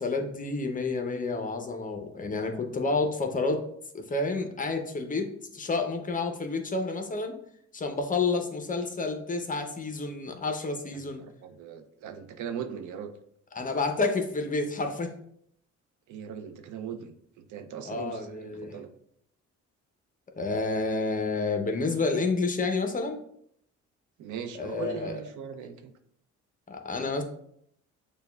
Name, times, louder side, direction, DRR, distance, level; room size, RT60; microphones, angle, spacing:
voice 1, 0.0-3.7 3.9-7.4 7.7-11.2 13.5-15.1 17.9-18.8 20.4-23.2 24.6-25.2 26.7-27.2, left 3 dB, 25° left, 5 dB, 0.6 m, -29 dB
voice 2, 10.9-13.1 16.1-17.2 17.5-18.9 24.2-25.9, right 8 dB, 80° right, 8 dB, 0.5 m, -39 dB
6.5 x 2.2 x 2.3 m, 0.69 s
cardioid pair, 90°, 30 cm